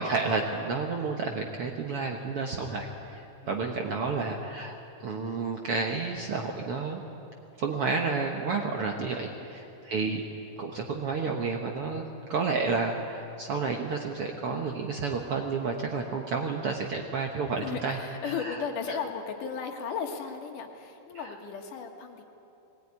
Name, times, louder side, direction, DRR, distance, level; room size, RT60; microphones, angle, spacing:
voice 1, 0.0-4.8 5.0-7.0 7.6-10.2 10.6-12.0 12.3-18.0 18.4-18.6 18.9-19.0 21.1-21.3, right 4 dB, 60° right, 2 dB, 1.5 m, -31 dB
voice 2, 17.6-22.2, left 6 dB, 70° left, 4 dB, 2.9 m, -36 dB
20.0 x 17.5 x 9.6 m, 2.9 s
omnidirectional pair, 3.9 m